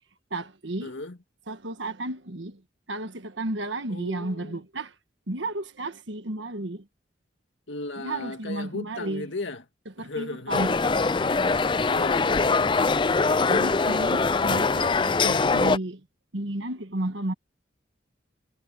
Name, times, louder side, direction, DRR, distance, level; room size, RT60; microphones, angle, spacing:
voice 1, 0.3-0.9 1.5-2.6 2.9-4.9 5.3-6.9 8.0-9.3 9.8-11.3 13.5-16.0 16.3-17.3, right 1 dB, 80° right, 1.5 m, -33 dB
voice 2, 0.8-1.2 3.9-4.6 7.7-9.6 10.0-10.7 11.9-12.8, left 2 dB, 80° left, 2.1 m, -36 dB
sound 1, 10.5-15.8, left 4 dB, 25° left, 0.4 m, -23 dB
head